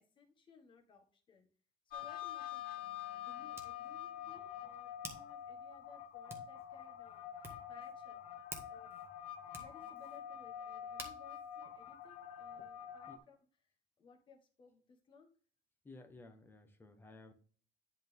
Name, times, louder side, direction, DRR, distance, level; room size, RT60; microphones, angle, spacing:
voice 1, 0.0-1.5 1.9-8.2 8.7-8.9 9.6-13.4 14.0-15.3, left 5 dB, 30° left, 4 dB, 1.6 m, -62 dB
sound 1, 1.9-13.2, left 10 dB, 65° left, 1.4 m, -46 dB
Hands, 2.0-12.7, right 2 dB, 15° right, 1.5 m, -56 dB
voice 2, 15.8-17.3, left 2 dB, 15° left, 6 dB, 1.1 m, -55 dB
11.0 x 4.3 x 3.5 m, 0.41 s
cardioid pair, 165°, 16 cm